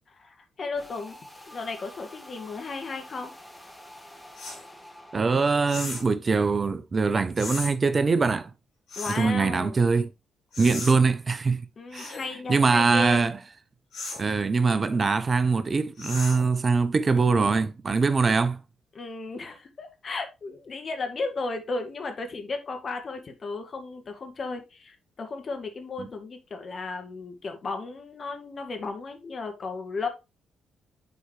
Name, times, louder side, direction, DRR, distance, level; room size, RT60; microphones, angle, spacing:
voice 1, 0.1-1.2 1.5-3.3 9.0-9.8 11.8-13.3 18.9-30.1, left 3 dB, 50° left, 1.9 m, -34 dB
sound 1, 0.8-5.8, left 1 dB, 15° left, 2.4 m, -48 dB
sound 2, 4.4-4.6 5.7-6.1 7.4-7.7 8.9-9.3 10.5-11.0 11.9-12.3 13.9-14.3 16.0-16.5, left 3 dB, 70° left, 3.9 m, -36 dB
voice 2, 5.1-8.5 9.1-10.1 10.6-11.6 11.9-12.2 12.5-13.4 14.2-18.6 26.0-26.1, right 4 dB, 40° right, 0.7 m, -23 dB
9.5 x 4.6 x 3.2 m
hypercardioid pair, 45°, 0 cm